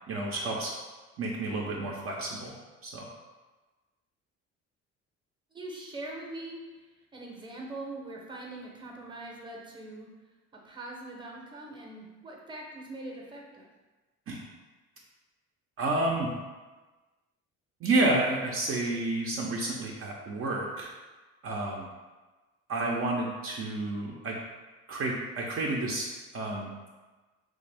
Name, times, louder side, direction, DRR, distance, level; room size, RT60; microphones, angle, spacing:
voice 1, 0.1-0.7 1.2-2.5 2.8-3.1 14.3-14.4 15.8-16.3 17.8-20.9 21.4-21.9 22.7-24.4 24.9-26.9, right 2 dB, 45° right, -2 dB, 0.5 m, -30 dB
voice 2, 5.5-6.9 7.1-10.1 10.5-13.7, right 2 dB, 15° right, -1 dB, 0.7 m, -42 dB
3.4 x 2.5 x 3.4 m, 1.2 s
cardioid pair, 100°, 30 cm